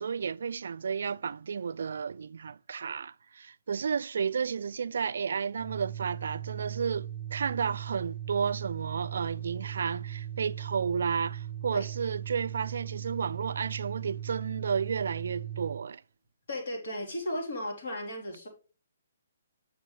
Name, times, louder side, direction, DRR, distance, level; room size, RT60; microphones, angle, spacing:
voice 1, 0.0-16.0, right 6 dB, 70° right, 0.3 m, -32 dB
Organ, 5.5-15.9, right 11 dB, 5° right, 1.0 m, -39 dB
voice 2, 16.5-18.5, left 1 dB, 65° left, 3.8 m, -35 dB
9.0 x 6.1 x 3.3 m
hypercardioid pair, 150°, 0 cm